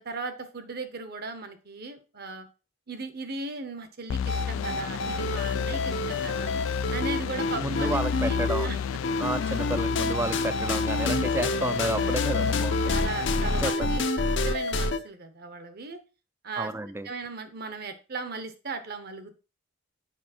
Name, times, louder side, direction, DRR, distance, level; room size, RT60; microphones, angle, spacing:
voice 1, 0.0-2.5 2.9-6.5 6.9-8.8 10.3-10.5 11.8-12.0 12.9-14.0 14.4-16.0 16.4-16.7 17.0-19.3, right 3 dB, 50° right, 9 dB, 1.0 m, -37 dB
sound 1, 4.1-13.7, left 7 dB, 90° left, 0.3 m, -31 dB
sound 2, 4.3-8.7 9.0-15.0, left 2 dB, 60° left, 0.7 m, -28 dB
voice 2, 7.6-8.7 9.2-13.0 13.6-14.1 16.6-17.1, right 1 dB, 10° right, 13 dB, 0.4 m, -31 dB
7.3 x 5.2 x 4.4 m, 0.33 s
head